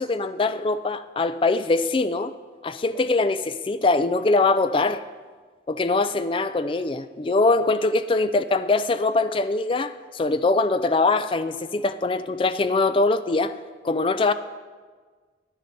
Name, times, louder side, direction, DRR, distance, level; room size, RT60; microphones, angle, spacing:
voice 1, 0.0-2.3 2.6-5.0 5.7-13.5 13.8-14.3, left 3 dB, 25° left, 12 dB, 0.3 m, -22 dB
10.0 x 9.8 x 4.0 m, 1.5 s
head